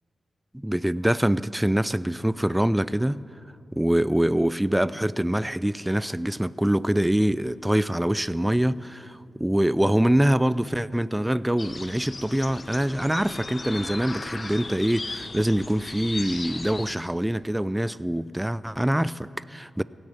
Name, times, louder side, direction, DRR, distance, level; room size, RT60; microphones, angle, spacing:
voice 1, 0.5-3.2 3.7-19.8, right 1 dB, 10° right, 0.3 m, -24 dB
sound 1, 11.6-16.9, left 3 dB, 45° left, 0.8 m, -37 dB
16.5 x 6.6 x 8.9 m
cardioid pair, 45°, 0 cm